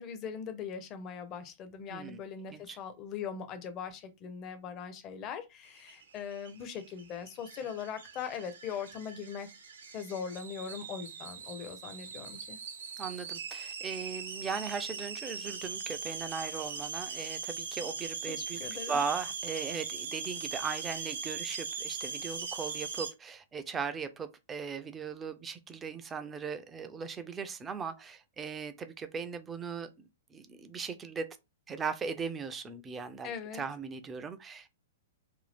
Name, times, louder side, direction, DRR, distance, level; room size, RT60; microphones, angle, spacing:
voice 1, 0.0-9.5 9.9-12.6 18.3-19.0 33.2-33.6, left 7 dB, 30° left, 0.6 m, -40 dB
voice 2, 1.9-2.2 2.5-2.8 13.0-31.4 31.7-34.7, right 5 dB, 15° right, 0.4 m, -38 dB
sound 1, 5.8-23.1, right 5 dB, 65° right, 0.6 m, -40 dB
2.6 x 2.4 x 3.3 m
figure-of-eight pair, 105°, 0 cm